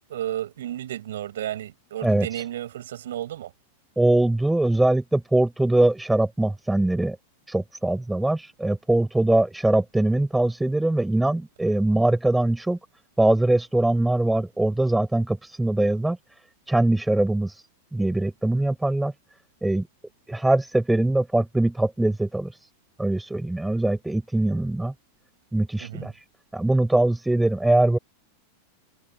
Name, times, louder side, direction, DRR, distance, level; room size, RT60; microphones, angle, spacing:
voice 1, 0.1-3.5 25.8-26.1, right 12 dB, 60° right, 6.3 m, -32 dB
voice 2, 2.0-2.4 4.0-7.2 7.5-12.8 13.2-16.2 16.7-17.6 17.9-19.1 19.6-19.9 20.3-22.5 23.0-24.9 25.5-26.2 26.5-28.0, right 2 dB, 5° right, 6.7 m, -22 dB
figure-of-eight pair, 90°, 0 cm